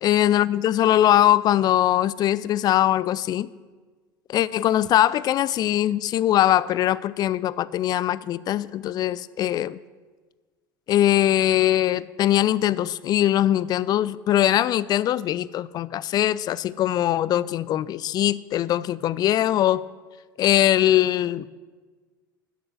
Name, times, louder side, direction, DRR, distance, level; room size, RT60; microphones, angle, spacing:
voice 1, 0.0-3.5 4.3-9.8 10.9-19.9 20.4-21.5, left 12 dB, 35° left, 20 dB, 0.3 m, -21 dB
12.0 x 7.7 x 6.1 m, 1.4 s
figure-of-eight pair, 70°, 11 cm